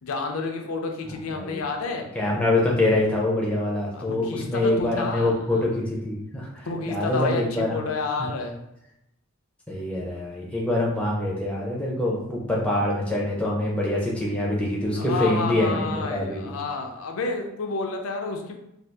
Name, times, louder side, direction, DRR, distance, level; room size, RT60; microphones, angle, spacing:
voice 1, 0.0-2.0 3.9-5.7 6.7-8.6 14.9-18.6, left 3 dB, 80° left, 3 dB, 0.5 m, -30 dB
voice 2, 2.1-7.8 9.7-16.5, left 1 dB, 5° left, -4 dB, 0.6 m, -25 dB
2.7 x 2.4 x 3.4 m, 0.83 s
head